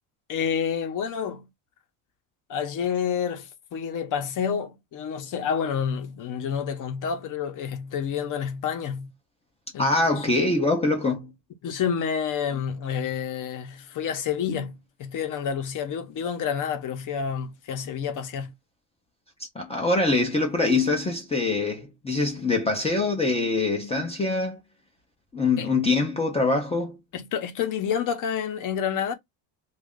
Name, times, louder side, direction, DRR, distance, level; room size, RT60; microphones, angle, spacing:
voice 1, 0.3-1.5 2.5-9.1 9.7-10.2 11.6-18.5 25.6-25.7 27.1-29.1, left 7 dB, 40° left, 0.8 m, -29 dB
voice 2, 9.8-11.3 19.5-24.6 25.3-27.0, left 3 dB, 15° left, 0.5 m, -24 dB
3.0 x 2.5 x 3.6 m
cardioid pair, 160°, 50 cm